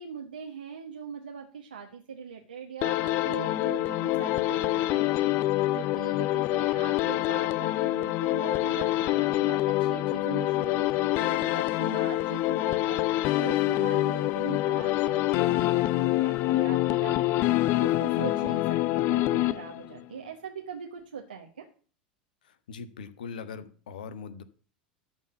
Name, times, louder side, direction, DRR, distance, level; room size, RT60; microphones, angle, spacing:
voice 1, 0.0-17.2 17.8-21.7, right 7 dB, 80° right, 0 dB, 1.3 m, -41 dB
sound 1, 2.8-20.0, left 16 dB, 45° left, 0.5 m, -26 dB
voice 2, 22.4-24.4, left 5 dB, 70° left, 13 dB, 1.1 m, -41 dB
13.0 x 4.5 x 8.0 m, 0.41 s
figure-of-eight pair, 85°, 5 cm